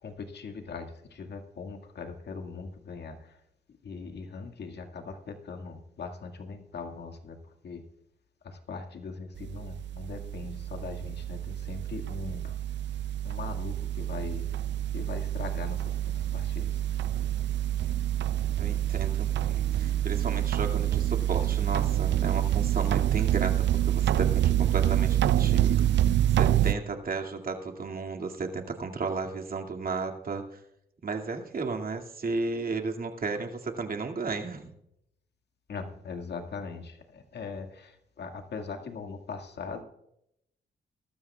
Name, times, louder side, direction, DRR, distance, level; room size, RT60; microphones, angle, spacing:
voice 1, 0.0-3.4 3.8-7.8 8.4-12.7 13.2-14.5 14.9-16.8 35.7-39.8, left 4 dB, 65° left, 4 dB, 2.0 m, -40 dB
sound 1, 9.4-26.7, right 12 dB, 75° right, 0.6 m, -27 dB
voice 2, 18.6-23.6 23.9-25.8 26.4-30.6 31.0-34.7, right 4 dB, 50° right, 2 dB, 2.3 m, -34 dB
22.0 x 13.0 x 2.4 m, 0.79 s
supercardioid pair, 55°, 19 cm